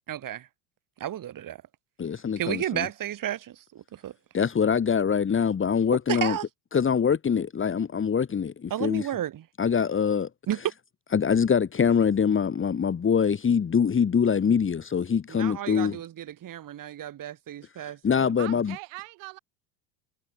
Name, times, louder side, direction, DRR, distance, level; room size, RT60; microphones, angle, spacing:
voice 1, 0.1-0.5 1.0-1.6 2.4-4.1 6.1-6.4 8.7-9.4 10.5-10.6 15.3-18.5, right 11 dB, 40° right, 5.6 m, -33 dB
voice 2, 2.0-2.9 4.3-6.4 6.7-9.1 9.6-10.3 11.1-16.0 17.8-18.7, left 7 dB, 25° left, 2.9 m, -24 dB
voice 3, 18.4-19.4, right 29 dB, 60° right, 3.7 m, -40 dB
hypercardioid pair, 90°, 48 cm